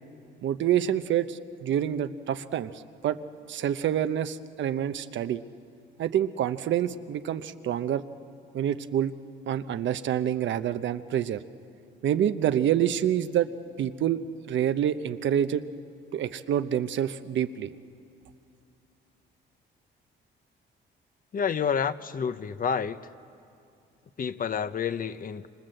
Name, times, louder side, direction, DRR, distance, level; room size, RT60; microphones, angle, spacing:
voice 1, 0.4-2.7 3.0-3.2 3.5-5.4 6.0-8.0 8.5-9.1 9.5-11.4 12.0-13.5 13.8-14.2 14.5-15.6 16.1-17.7, right 10 dB, 70° right, 11 dB, 0.9 m, -27 dB
voice 2, 21.3-23.0 24.2-25.5, left 7 dB, 45° left, 12 dB, 0.8 m, -29 dB
26.5 x 25.5 x 7.8 m, 2.5 s
cardioid pair, 90°, 20 cm